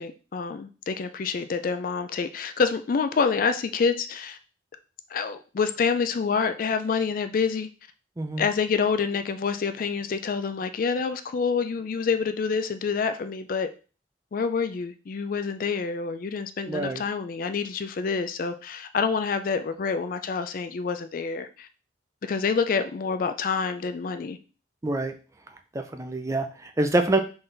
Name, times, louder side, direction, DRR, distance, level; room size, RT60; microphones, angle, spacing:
voice 1, 0.0-4.4 5.1-7.7 8.4-13.7 14.3-21.7 22.2-24.4, left 5 dB, 50° left, 10 dB, 0.4 m, -27 dB
voice 2, 16.7-17.0 24.8-25.1 25.7-27.2, right 2 dB, 15° right, 6 dB, 0.4 m, -26 dB
4.0 x 3.9 x 3.3 m, 0.36 s
head